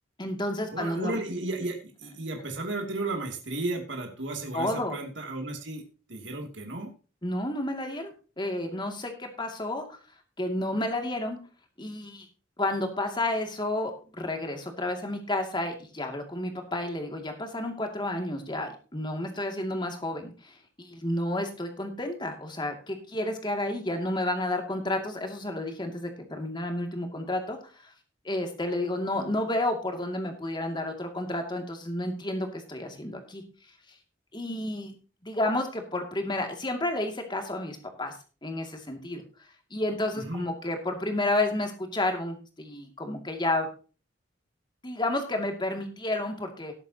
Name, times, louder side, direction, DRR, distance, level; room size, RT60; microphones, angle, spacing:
voice 1, 0.2-1.2 4.5-5.0 7.2-9.9 10.4-11.4 11.8-12.3 12.6-27.9 28.2-33.4 34.3-34.9 35.2-38.2 38.4-39.2 39.7-43.7 44.8-46.7, left 1 dB, 25° left, 4 dB, 2.3 m, -31 dB
voice 2, 0.7-5.8 6.1-6.9 40.2-40.5, right 2 dB, 70° right, 2 dB, 2.7 m, -34 dB
18.5 x 8.2 x 2.9 m, 0.35 s
head